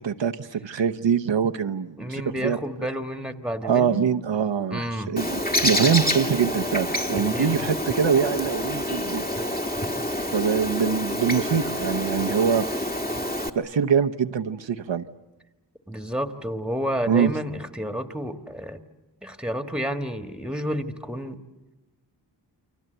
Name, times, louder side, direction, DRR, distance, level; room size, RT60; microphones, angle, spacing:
voice 1, 0.0-2.6 3.6-9.2 10.3-12.9 13.6-15.1 17.1-17.3, right 7 dB, 90° right, 6 dB, 0.9 m, -24 dB
voice 2, 2.0-4.0 4.7-5.1 7.3-7.5 15.9-18.8 19.2-21.4, equal, ahead, 8 dB, 1.5 m, -30 dB
Bird, 5.2-13.5, left 1 dB, 20° left, 1.6 m, -27 dB
29.5 x 24.5 x 7.9 m, 1.1 s
wide cardioid pair, 80°, 43 cm